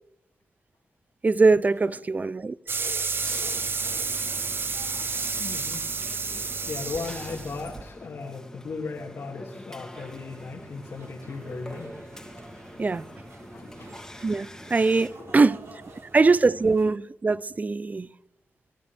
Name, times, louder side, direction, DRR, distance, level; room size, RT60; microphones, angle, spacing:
voice 1, 1.2-2.5 12.8-13.1 14.2-15.6 16.1-18.1, right 3 dB, 30° right, 0.5 m, -22 dB
sound 1, 2.7-7.8, right 4 dB, 50° right, 0.9 m, -30 dB
voice 2, 2.8-4.1 5.4-5.9 6.7-12.0 13.5-13.9 15.1-15.4, left 4 dB, 70° left, 2.4 m, -37 dB
sound 2, 3.2-15.1, left 1 dB, 10° left, 2.2 m, -45 dB
sound 3, 9.9-16.9, right 3 dB, 65° right, 2.7 m, -48 dB
24.5 x 14.0 x 3.5 m
cardioid pair, 70°, 5 cm